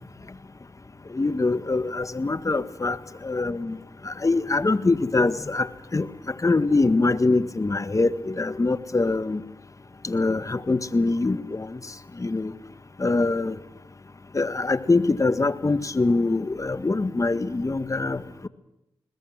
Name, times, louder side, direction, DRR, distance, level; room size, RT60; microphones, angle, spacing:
voice 1, 1.1-3.0 3.2-3.8 4.0-6.1 6.4-9.4 10.0-11.8 12.2-12.5 13.0-13.6 14.3-18.5, left 3 dB, 35° left, 12 dB, 1.7 m, -23 dB
21.0 x 20.5 x 9.1 m, 0.88 s
cardioid pair, 45°, 9 cm